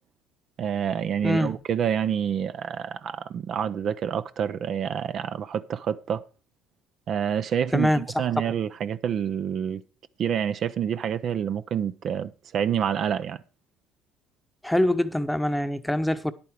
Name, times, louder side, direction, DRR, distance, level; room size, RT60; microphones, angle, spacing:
voice 1, 0.6-6.2 7.1-9.8 10.2-13.4, right 8 dB, 55° right, 0.5 m, -28 dB
voice 2, 1.2-1.6 7.7-8.0 14.6-16.3, left 1 dB, 5° left, 0.9 m, -24 dB
10.0 x 8.6 x 4.6 m
supercardioid pair, 85°, 0 cm